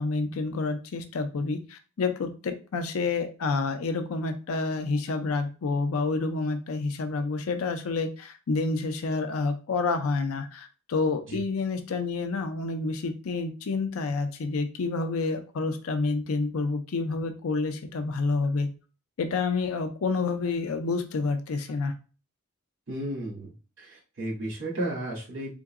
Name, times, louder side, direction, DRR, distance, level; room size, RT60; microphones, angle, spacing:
voice 1, 0.0-18.7 19.2-22.0, left 3 dB, 90° left, 8 dB, 0.5 m, -29 dB
voice 2, 22.9-23.5 23.8-25.6, right 1 dB, 60° right, -4 dB, 1.7 m, -33 dB
3.8 x 3.6 x 2.4 m, 0.35 s
head